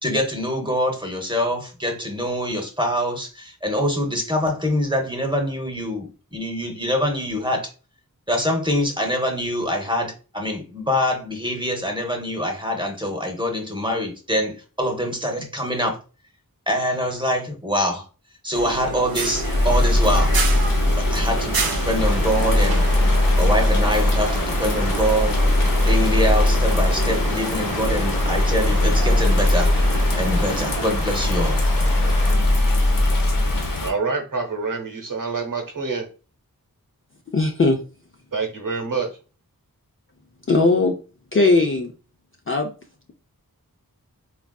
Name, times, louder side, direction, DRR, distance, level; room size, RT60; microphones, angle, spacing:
voice 1, 0.0-7.7 8.3-16.0 16.7-18.1 18.4-20.4 21.0-21.5 21.9-22.9 23.4-25.4 25.8-29.8 30.2-31.6, equal, 15° right, 0.7 m, -24 dB
sound 1, 18.5-30.9, right 4 dB, 85° right, 0.5 m, -31 dB
Bird vocalization bird call bird song / Rain, 19.3-33.9, left 1 dB, 70° left, 0.7 m, -20 dB
sound 2, 22.0-32.4, left 1 dB, 20° left, 1.0 m, -33 dB
voice 2, 33.8-36.1 38.3-39.1, right 4 dB, 65° right, 0.9 m, -26 dB
voice 3, 37.3-37.8 40.5-41.0 41.3-41.9 42.5-42.7, left 3 dB, 40° left, 0.4 m, -18 dB
3.4 x 2.4 x 2.2 m
wide cardioid pair, 45°, 35 cm